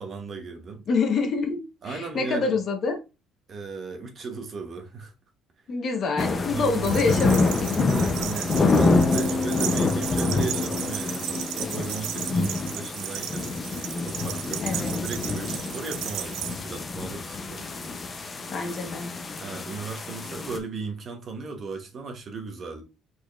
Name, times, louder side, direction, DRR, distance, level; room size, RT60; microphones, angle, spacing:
voice 1, 0.0-0.8 1.8-2.5 3.5-5.1 6.5-7.3 7.8-13.5 14.0-17.7 19.4-22.8, right 4 dB, 35° right, 1.0 m, -36 dB
voice 2, 0.9-3.0 5.7-7.9 14.6-14.9 18.5-19.1, left 4 dB, 40° left, 1.1 m, -26 dB
sound 1, 6.2-20.6, left 3 dB, 25° left, 0.6 m, -27 dB
sound 2, 6.8-16.6, right 12 dB, 75° right, 0.4 m, -35 dB
Bass guitar, 8.8-12.7, left 3 dB, ahead, 1.3 m, -32 dB
5.0 x 4.2 x 2.4 m
cardioid pair, 150°, 0 cm